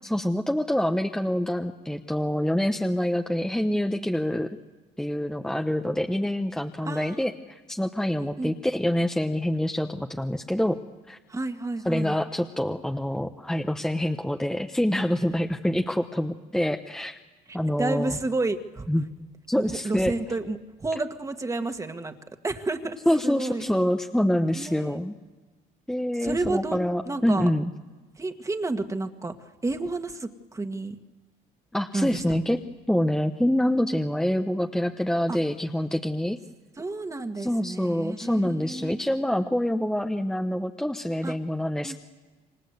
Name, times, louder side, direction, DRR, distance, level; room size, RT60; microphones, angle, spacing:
voice 1, 0.0-4.6 5.0-10.8 11.1-11.2 11.8-17.2 17.5-18.2 18.9-19.1 19.5-20.1 23.1-25.1 25.9-27.6 31.7-32.6 32.9-36.4 37.4-42.0, left 1 dB, 5° left, 4 dB, 1.0 m, -26 dB
voice 2, 6.8-7.3 8.2-8.5 11.3-12.1 17.5-18.8 19.5-22.1 22.4-23.6 24.5-25.0 26.2-26.8 27.1-27.5 28.2-31.0 31.9-32.6 35.3-35.4 36.8-39.0 41.2-41.3 41.8-42.0, right 2 dB, 20° right, 7 dB, 1.7 m, -31 dB
28.0 x 24.5 x 8.1 m, 1.3 s
cardioid pair, 110°, 17 cm